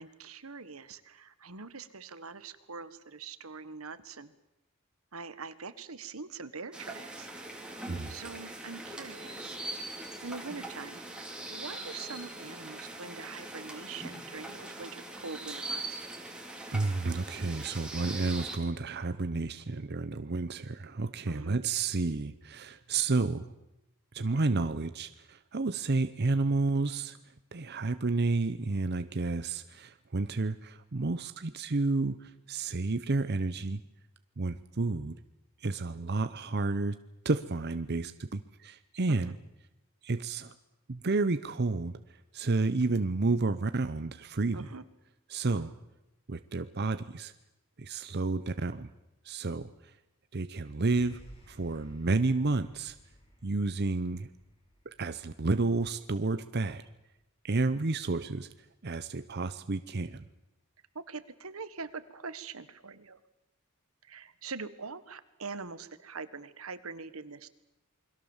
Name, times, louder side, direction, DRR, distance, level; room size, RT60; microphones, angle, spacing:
voice 1, 0.0-4.3 5.1-7.3 8.1-9.6 10.2-16.0 21.2-21.6 39.1-39.3 44.5-44.8 60.9-63.2 64.0-67.5, right 4 dB, 85° right, 13 dB, 1.5 m, -43 dB
sound 1, 6.7-18.6, right 2 dB, 5° right, 3.2 m, -41 dB
voice 2, 16.7-23.5 24.1-27.2 27.5-33.8 34.4-35.2 35.6-36.9 37.2-39.3 40.0-40.5 40.9-42.0 42.3-44.7 45.3-45.7 46.3-47.3 47.8-48.9 49.2-49.7 50.3-51.2 51.5-52.9 53.4-54.3 55.0-56.8 57.4-58.5 58.8-60.2, right 3 dB, 50° right, 11 dB, 0.8 m, -30 dB
sound 2, 51.0-57.4, equal, 30° left, 7.3 m, -58 dB
28.5 x 22.0 x 7.3 m, 0.94 s
head